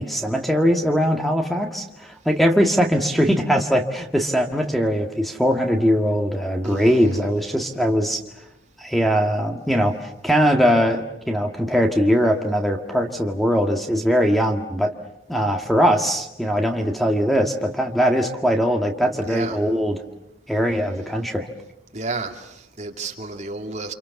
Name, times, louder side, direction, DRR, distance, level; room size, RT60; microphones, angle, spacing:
voice 1, 0.0-8.2 8.8-14.9 15.3-20.0 20.5-21.5, equal, ahead, 1.8 m, -21 dB
voice 2, 6.6-7.3 19.2-19.6 21.9-23.9, right 3 dB, 40° right, 2.7 m, -31 dB
29.5 x 27.0 x 7.1 m
head